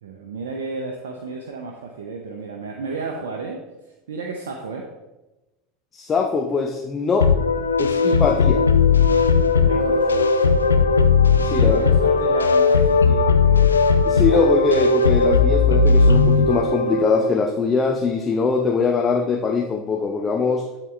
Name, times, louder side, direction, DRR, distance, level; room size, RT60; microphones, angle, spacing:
voice 1, 0.0-3.6 4.1-4.9 9.6-10.4 11.4-14.4, right 4 dB, 75° right, 2 dB, 0.7 m, -33 dB
voice 2, 5.9-7.3 7.8-8.7 11.4-11.8 14.1-20.6, left 5 dB, 25° left, 3 dB, 0.8 m, -22 dB
sound 1, 7.2-17.3, left 4 dB, 90° left, 0.5 m, -17 dB
12.0 x 4.0 x 3.3 m, 1.1 s
hypercardioid pair, 80°, 0 cm